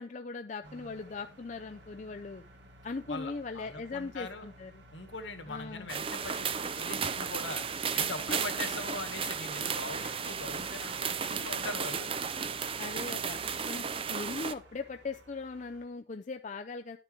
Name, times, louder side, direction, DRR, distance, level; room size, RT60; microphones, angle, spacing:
voice 1, 0.0-2.4 2.8-4.7 5.5-5.9 7.9-8.0 8.3-8.4 12.8-17.0, left 4 dB, 40° left, 6 dB, 0.5 m, -39 dB
sound 1, 0.6-15.9, right 1 dB, 65° right, 2.4 m, -55 dB
voice 2, 3.1-4.5 4.9-7.6 7.9-12.1, left 3 dB, 70° left, 8 dB, 1.7 m, -41 dB
sound 2, 5.9-14.5, right 6 dB, 30° right, 0.5 m, -34 dB
11.5 x 6.8 x 4.5 m, 0.34 s
head